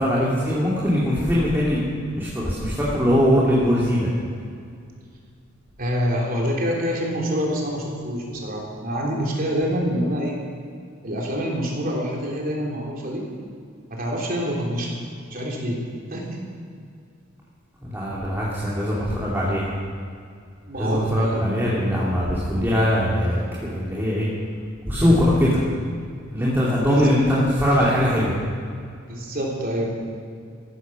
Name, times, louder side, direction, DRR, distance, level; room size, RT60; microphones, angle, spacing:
voice 1, 0.0-1.8 2.2-4.1 17.8-19.8 20.8-24.3 24.8-25.6 26.3-28.3, equal, 10° right, -7 dB, 2.5 m, -21 dB
voice 2, 5.8-10.4 11.0-13.3 13.9-15.0 15.3-15.8 16.1-16.4 20.7-21.4 25.0-25.2 26.9-27.2 29.1-29.9, equal, 45° right, -2 dB, 3.5 m, -26 dB
15.0 x 13.0 x 6.2 m, 2.3 s
head